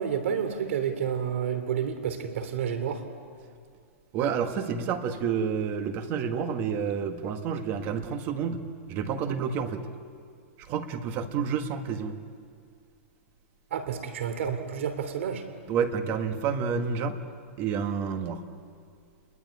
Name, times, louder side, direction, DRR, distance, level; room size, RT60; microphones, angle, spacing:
voice 1, 0.0-3.0 13.7-15.4, right 8 dB, 60° right, 9 dB, 3.1 m, -30 dB
voice 2, 4.1-8.6 8.9-9.9 10.7-12.1 15.7-17.2 17.6-18.4, right 6 dB, 25° right, 8 dB, 1.6 m, -29 dB
29.0 x 21.0 x 9.8 m, 2.3 s
hypercardioid pair, 165°, 8 cm